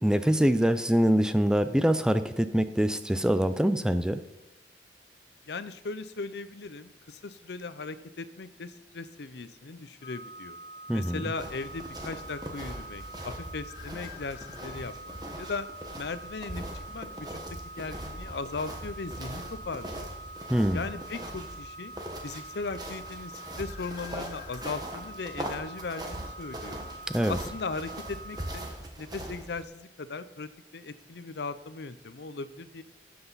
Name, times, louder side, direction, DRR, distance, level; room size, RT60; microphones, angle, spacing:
voice 1, 0.0-4.2 10.9-11.2 20.5-20.8 27.1-27.4, equal, 5° right, 10 dB, 0.4 m, -24 dB
voice 2, 5.5-10.6 10.9-15.7 16.0-16.6 16.9-17.4 17.8-20.1 20.7-21.9 22.2-26.8 27.3-32.8, left 4 dB, 65° left, 13 dB, 0.6 m, -38 dB
sound 1, 10.0-28.7, right 1 dB, 35° left, 2.1 m, -45 dB
sound 2, 11.4-29.6, right 1 dB, 25° right, 1.3 m, -41 dB
12.5 x 7.8 x 4.0 m, 0.94 s
head